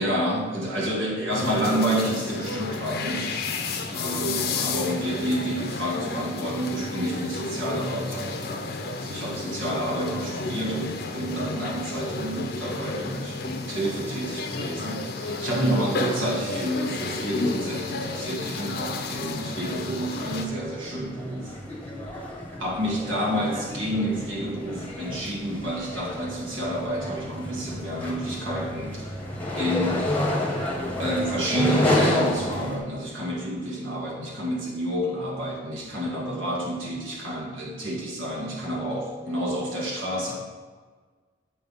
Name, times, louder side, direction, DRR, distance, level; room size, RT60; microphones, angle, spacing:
voice 1, 0.0-3.4 3.9-8.3 9.0-21.6 22.6-29.1 29.5-30.1 31.0-40.3, right 1 dB, 85° right, -2 dB, 1.7 m, -29 dB
sound 1, 1.3-20.5, left 3 dB, 50° left, 0.6 m, -32 dB
sound 2, 18.5-18.7 18.9-32.8, left 1 dB, 10° left, 0.9 m, -30 dB
7.8 x 3.5 x 5.3 m, 1.5 s
head